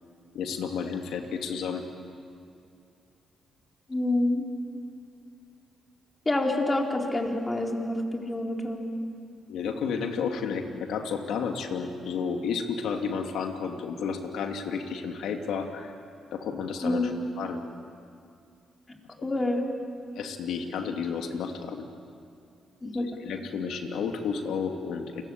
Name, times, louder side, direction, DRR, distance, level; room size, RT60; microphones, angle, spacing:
voice 1, 0.3-1.8 9.5-15.9 16.3-17.1 17.4-17.6 19.2-19.4 20.2-21.8 22.9-25.2, left 6 dB, 85° left, 4 dB, 2.7 m, -32 dB
voice 2, 3.9-4.4 6.3-8.9 16.8-17.0 19.2-19.6 22.8-23.1, left 2 dB, 20° left, 1 dB, 4.1 m, -27 dB
29.5 x 22.0 x 8.9 m, 2.4 s
cardioid pair, 90°, 0 cm